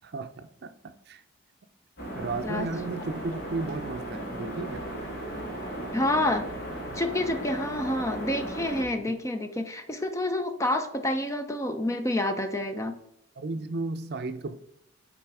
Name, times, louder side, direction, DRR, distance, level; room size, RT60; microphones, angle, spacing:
voice 1, 0.0-1.2 2.1-4.9 13.4-14.5, right 3 dB, 55° right, 0.5 m, -34 dB
sound 1, 2.0-8.8, right 1 dB, 50° left, 1.8 m, -36 dB
voice 2, 5.9-6.5 6.9-12.9, left 1 dB, 15° left, 0.5 m, -28 dB
5.8 x 4.1 x 4.7 m
head